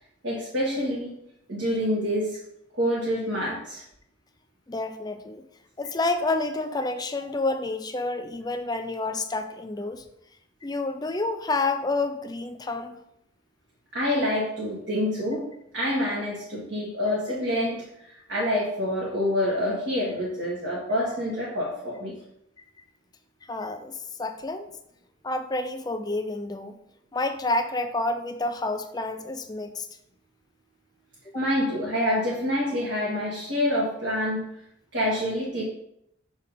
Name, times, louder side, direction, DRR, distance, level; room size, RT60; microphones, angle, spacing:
voice 1, 0.2-1.1 1.5-2.4 2.7-3.8 13.9-15.4 15.7-17.8 18.3-22.1 31.3-34.4 34.9-35.6, left 1 dB, 60° right, -6 dB, 1.7 m, -27 dB
voice 2, 4.7-5.4 5.8-10.0 10.6-13.0 23.5-24.7 25.2-26.7 27.1-29.9 31.3-31.4, left 2 dB, 20° left, 8 dB, 0.4 m, -29 dB
6.3 x 4.2 x 5.2 m, 0.76 s
head